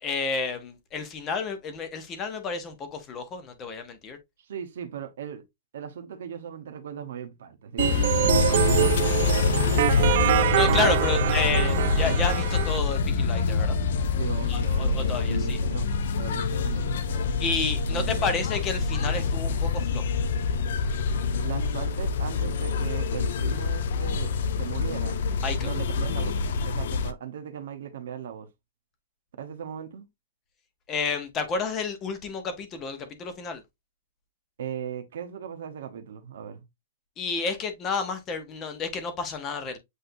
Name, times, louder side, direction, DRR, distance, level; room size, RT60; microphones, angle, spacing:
voice 1, 0.0-4.2 10.5-13.8 14.5-15.6 17.4-20.0 25.4-25.7 30.9-33.6 37.2-39.8, left 5 dB, 20° left, 0.8 m, -30 dB
voice 2, 4.4-5.4 5.7-10.4 10.9-11.6 14.2-17.3 17.9-18.4 21.4-25.2 25.6-26.4 26.6-28.5 29.4-30.1 34.6-36.6, right 8 dB, 70° right, 0.9 m, -38 dB
sound 1, 7.8-27.1, left 5 dB, 60° left, 0.5 m, -26 dB
sound 2, 7.8-12.8, right 11 dB, 45° right, 0.5 m, -25 dB
sound 3, 8.2-14.5, left 2 dB, 85° left, 1.9 m, -33 dB
7.8 x 2.6 x 2.6 m
supercardioid pair, 175°, 0 cm